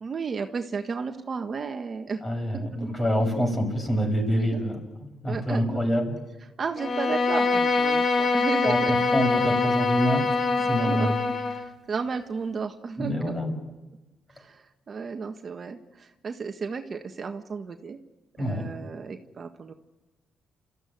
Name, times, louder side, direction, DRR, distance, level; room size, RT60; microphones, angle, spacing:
voice 1, 0.0-2.2 2.5-2.9 4.4-4.6 5.3-5.8 6.6-8.9 10.8-13.3 14.3-18.0 18.4-19.7, right 5 dB, 45° right, 5 dB, 1.5 m, -33 dB
voice 2, 2.2-6.2 8.6-10.2 10.7-11.2 13.0-13.5 18.4-18.6, equal, 20° left, 4 dB, 7.5 m, -26 dB
Bowed string instrument, 6.8-11.7, left 3 dB, 45° left, 2.2 m, -24 dB
29.5 x 14.5 x 9.4 m, 1.1 s
cardioid pair, 90°, 0 cm